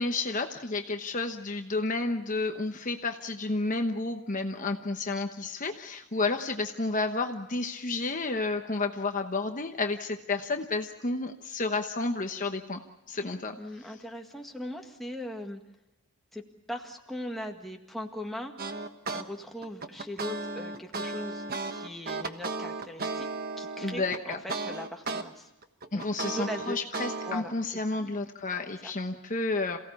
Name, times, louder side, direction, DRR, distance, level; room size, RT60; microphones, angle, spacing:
voice 1, 0.0-12.8 13.1-13.6 23.8-24.4 25.9-29.8, left 3 dB, 35° left, 5 dB, 1.1 m, -31 dB
voice 2, 13.6-15.6 16.3-16.4 16.7-18.6 19.1-23.3 23.6-25.5 25.9-26.8 27.3-28.0 28.8-28.9, left 1 dB, ahead, 1 dB, 1.9 m, -40 dB
sound 1, 18.6-19.2 19.6-25.2 25.6-27.4, right 3 dB, 40° right, 1.3 m, -35 dB
28.0 x 17.0 x 8.4 m, 1.0 s
head